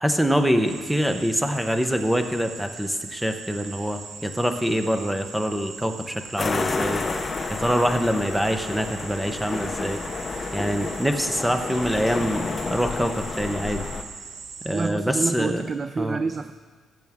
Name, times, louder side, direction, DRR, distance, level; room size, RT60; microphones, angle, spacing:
voice 1, 0.0-7.0 7.6-10.0 10.5-13.9 14.6-15.6 16.0-16.2, equal, 5° right, 7 dB, 0.7 m, -25 dB
sound 1, 0.6-14.9, right 5 dB, 75° right, 1.0 m, -41 dB
sound 2, 6.4-14.0, left 4 dB, 30° left, 0.7 m, -30 dB
voice 2, 14.7-16.5, right 4 dB, 30° right, 11 dB, 0.3 m, -27 dB
18.0 x 7.7 x 3.6 m, 1.5 s
cardioid pair, 140°, 0 cm